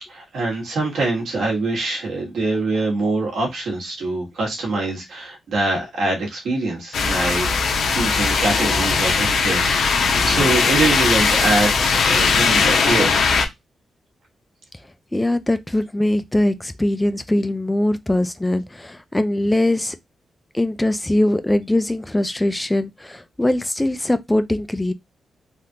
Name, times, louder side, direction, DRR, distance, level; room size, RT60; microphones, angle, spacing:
voice 1, 0.1-7.5 7.9-13.3, right 2 dB, 80° right, 1.4 m, -24 dB
sound 1, 6.9-13.5, left 5 dB, 75° left, 0.7 m, -19 dB
voice 2, 15.1-20.0 20.5-24.9, left 1 dB, 10° left, 0.3 m, -21 dB
3.4 x 2.4 x 2.7 m
cardioid pair, 100°, 0 cm